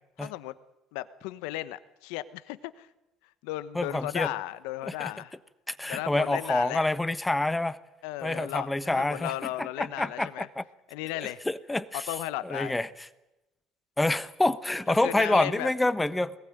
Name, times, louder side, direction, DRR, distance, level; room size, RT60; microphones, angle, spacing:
voice 1, 0.2-0.5 0.9-2.9 3.4-5.3 5.9-6.8 8.0-10.5 10.9-11.4 12.1-12.7 14.9-15.7, left 16 dB, 80° left, 14 dB, 1.1 m, -35 dB
voice 2, 3.7-4.3 4.8-5.1 5.7-7.8 8.2-9.3 9.6-10.6 11.5-12.0 12.4-12.9 14.0-16.4, left 2 dB, 10° left, 14 dB, 1.2 m, -27 dB
21.0 x 19.5 x 9.1 m, 0.99 s
hypercardioid pair, 70°, 0 cm